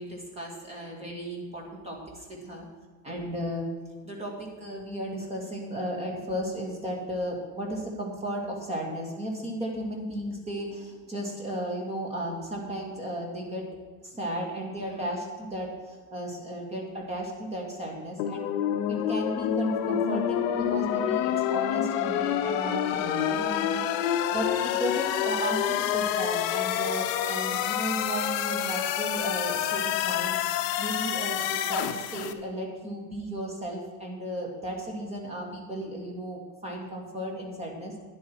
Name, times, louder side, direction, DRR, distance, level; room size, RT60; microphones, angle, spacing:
voice 1, 0.0-2.7 3.0-3.7 4.0-13.7 14.0-18.5 18.9-37.9, right 1 dB, 15° right, 0 dB, 2.3 m, -35 dB
sound 1, 18.2-32.3, left 10 dB, 45° left, 0.8 m, -28 dB
12.5 x 10.0 x 4.7 m, 1.4 s
supercardioid pair, 170°, 41 cm